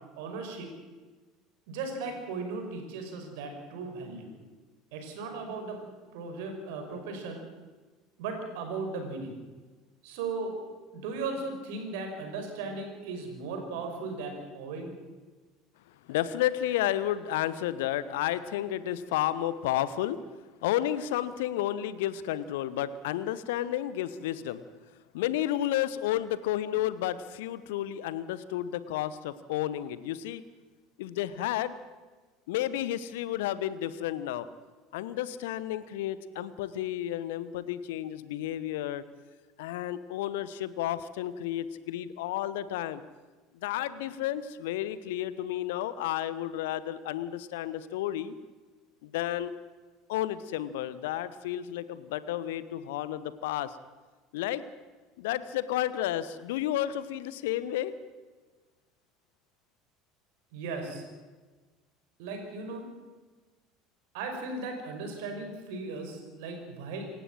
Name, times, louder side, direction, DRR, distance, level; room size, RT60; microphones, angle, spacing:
voice 1, 0.2-0.7 1.7-4.3 4.9-5.8 6.1-7.4 8.2-9.3 10.0-10.6 10.9-14.9 60.5-61.0 62.2-62.8 64.1-67.1, right 3 dB, 60° right, 4 dB, 5.5 m, -37 dB
voice 2, 16.1-20.2 20.6-24.6 25.1-30.4 31.0-31.7 32.5-34.5 34.9-39.0 39.6-43.0 43.5-48.3 49.0-49.5 50.1-53.8 54.3-54.6 55.2-57.9, left 12 dB, 65° left, 15 dB, 1.1 m, -31 dB
26.5 x 15.5 x 7.6 m, 1.3 s
figure-of-eight pair, 65°, 0 cm